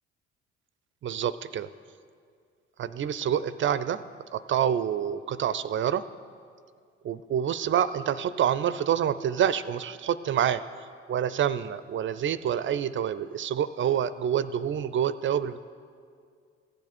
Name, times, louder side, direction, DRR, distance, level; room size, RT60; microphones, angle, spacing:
voice 1, 1.0-1.7 2.8-4.0 4.3-6.0 7.0-10.6 11.1-15.6, right 9 dB, 40° right, 15 dB, 0.4 m, -27 dB
14.5 x 8.3 x 4.3 m, 2.2 s
hypercardioid pair, 55°, 32 cm